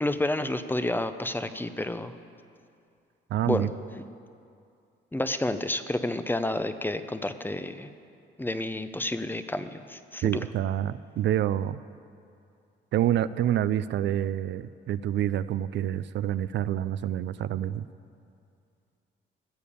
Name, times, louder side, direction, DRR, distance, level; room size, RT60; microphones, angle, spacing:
voice 1, 0.0-2.1 3.5-3.7 5.1-7.9 8.4-10.5, left 1 dB, 10° left, 11 dB, 0.6 m, -30 dB
voice 2, 3.3-3.7 10.2-11.8 12.9-17.8, right 11 dB, 65° right, 14 dB, 0.4 m, -27 dB
16.0 x 7.0 x 8.4 m, 2.4 s
cardioid pair, 90°, 20 cm